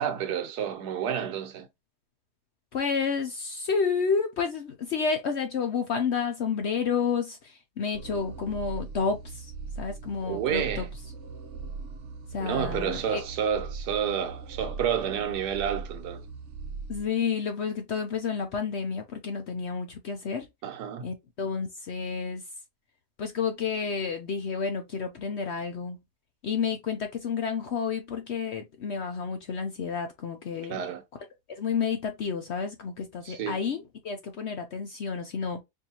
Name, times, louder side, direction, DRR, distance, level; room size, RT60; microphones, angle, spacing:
voice 1, 0.0-1.7 10.2-10.9 12.4-16.2 20.6-21.1 30.7-31.0 33.2-33.6, right 8 dB, 85° right, 1.4 m, -30 dB
voice 2, 2.7-9.5 9.8-10.9 12.3-13.2 16.9-20.5 21.0-22.4 23.2-26.0 26.4-30.7 31.5-35.6, left 5 dB, 60° left, 0.7 m, -30 dB
sound 1, 7.9-17.1, right 4 dB, 65° right, 0.8 m, -40 dB
4.6 x 2.6 x 2.8 m
omnidirectional pair, 1.7 m